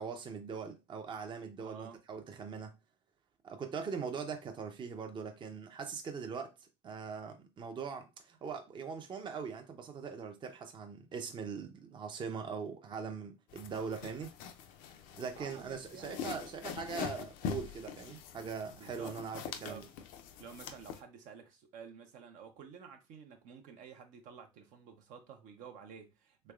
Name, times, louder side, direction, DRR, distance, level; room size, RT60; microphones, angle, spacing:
voice 1, 0.0-2.7 3.4-6.5 6.8-14.3 15.2-19.8, right 5 dB, 35° right, 0.5 m, -41 dB
voice 2, 1.6-2.0 15.1-16.4 18.8-19.1 19.4-19.9 20.4-26.5, right 6 dB, 75° right, 0.7 m, -51 dB
sound 1, 13.5-21.0, left 8 dB, 80° left, 0.5 m, -44 dB
3.3 x 3.2 x 2.4 m
supercardioid pair, 95°, 14 cm